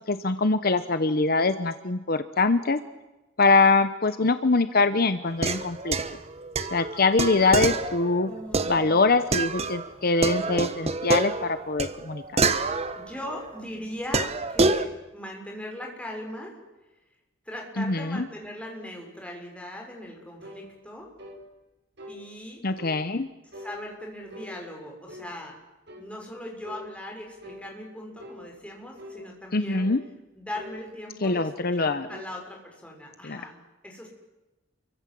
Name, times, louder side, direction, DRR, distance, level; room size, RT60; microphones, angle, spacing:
voice 1, 0.1-2.8 3.4-6.0 6.7-8.3 8.7-12.2 17.8-18.3 22.6-23.3 29.5-30.0 31.2-32.1 33.2-33.4, left 3 dB, 50° left, 10 dB, 1.0 m, -23 dB
sound 1, 5.3-9.9 10.2-13.5 14.1-14.9, right 3 dB, 35° right, 1.2 m, -27 dB
voice 2, 8.2-9.0 13.0-16.6 17.5-21.1 22.1-22.6 23.5-25.6 26.0-29.9 30.3-34.1, left 1 dB, 5° left, 0 dB, 5.6 m, -39 dB
sound 2, 20.4-20.7 21.2-21.4 22.0-22.2 22.8-23.0 23.5-23.8 24.3-24.6 25.1-25.3 25.9-26.1 26.6-26.9 27.4-27.7 28.2-28.4 29.0-29.2 29.7-30.0 30.5-30.8 31.3-31.6 31.9-32.4, left 1 dB, 60° right, 4.7 m, -43 dB
28.5 x 23.5 x 7.7 m, 1.1 s
head